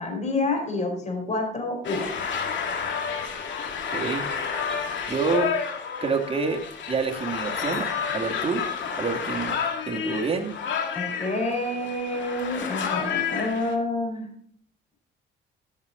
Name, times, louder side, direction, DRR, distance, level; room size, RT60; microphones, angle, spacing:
voice 1, 0.0-2.1 10.9-14.3, left 2 dB, 35° left, 2 dB, 4.5 m, -28 dB
sound 1, 1.8-13.7, left 6 dB, 70° left, 2.2 m, -30 dB
voice 2, 3.9-4.2 5.1-5.5 6.0-6.6 6.9-8.7 9.0-9.6 9.9-10.5, right 4 dB, 30° right, 1 dB, 2.1 m, -27 dB
14.0 x 6.8 x 3.8 m, 0.66 s
cardioid pair, 90°, 20 cm